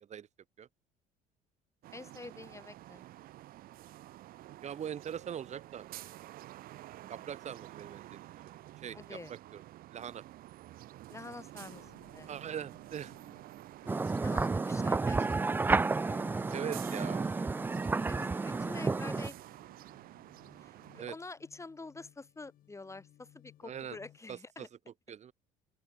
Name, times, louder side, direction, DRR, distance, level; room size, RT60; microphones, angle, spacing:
sound 1, 1.8-21.1, right 15 dB, 65° right, 1.5 m, -50 dB
voice 1, 1.9-3.0 8.9-9.3 11.1-12.3 14.2-15.2 15.9-16.5 18.1-19.4 20.6-24.7, left 3 dB, 15° left, 1.6 m, -47 dB
voice 2, 4.6-5.9 7.1-8.5 8.8-9.6 9.9-10.2 12.3-13.2 16.5-17.5 18.0-18.1 21.0-21.1 23.6-24.0 24.3-24.7 25.1-25.3, right 9 dB, 45° right, 1.4 m, -42 dB
sound 2, 11.7-24.2, left 12 dB, 60° left, 6.2 m, -61 dB
sound 3, 13.9-19.3, right 3 dB, 10° right, 0.3 m, -31 dB
open air
supercardioid pair, 75°, 16 cm